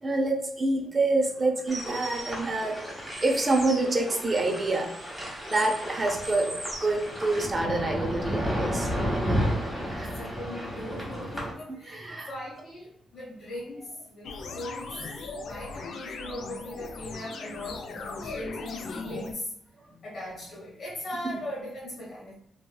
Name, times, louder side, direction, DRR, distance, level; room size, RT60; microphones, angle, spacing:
voice 1, 0.0-9.6 9.8-10.1 11.7-12.3 14.9-15.0 15.8-15.9 18.2-18.3 21.2-21.4, right 2 dB, 25° right, 2 dB, 0.5 m, -28 dB
sound 1, 1.7-11.5, equal, 10° left, 1.1 m, -32 dB
voice 2, 9.5-15.0 15.4-19.5 20.0-22.3, left 1 dB, 45° left, -7 dB, 1.1 m, -39 dB
sound 2, 14.2-19.3, left 4 dB, 60° left, 0.4 m, -38 dB
3.1 x 3.0 x 2.2 m, 0.72 s
wide cardioid pair, 160°, 0 cm